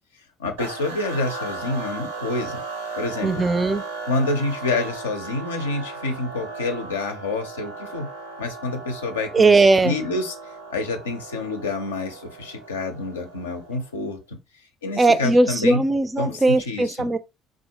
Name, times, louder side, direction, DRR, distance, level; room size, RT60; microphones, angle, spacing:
voice 1, 0.4-2.6 3.0-3.3 4.1-8.1 8.4-9.5 9.8-10.3 10.7-14.4 14.8-15.8 16.2-17.1, left 3 dB, 80° left, 0.5 m, -28 dB
sound 1, 0.6-14.0, right 3 dB, 75° right, 0.5 m, -36 dB
voice 2, 3.2-3.8 9.3-10.0 15.0-17.2, right 3 dB, 20° right, 0.4 m, -18 dB
3.5 x 2.1 x 2.9 m
figure-of-eight pair, 55°, 0 cm